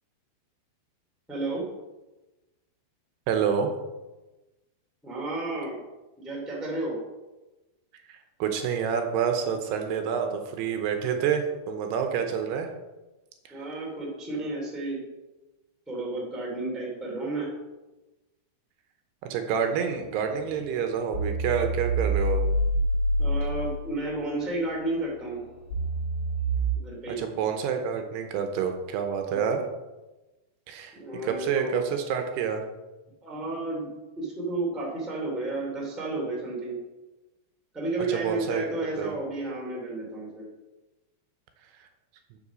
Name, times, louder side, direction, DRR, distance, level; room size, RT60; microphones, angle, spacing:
voice 1, 1.3-1.7 5.0-5.8 6.2-7.0 13.5-15.0 15.9-17.5 23.2-25.4 26.7-27.2 29.3-29.6 30.9-31.8 33.2-36.8 37.7-40.5, right 2 dB, ahead, -4 dB, 1.5 m, -32 dB
voice 2, 3.3-3.7 8.1-12.7 13.5-13.6 19.2-22.4 27.2-29.6 30.7-32.7 38.1-38.7 39.0-39.1, right 7 dB, 80° right, 5 dB, 2.8 m, -28 dB
sound 1, 20.4-20.5 21.1-24.0 24.4-26.7, right 1 dB, 50° left, 4.1 m, -27 dB
7.4 x 6.9 x 6.2 m, 1.1 s
omnidirectional pair, 4.9 m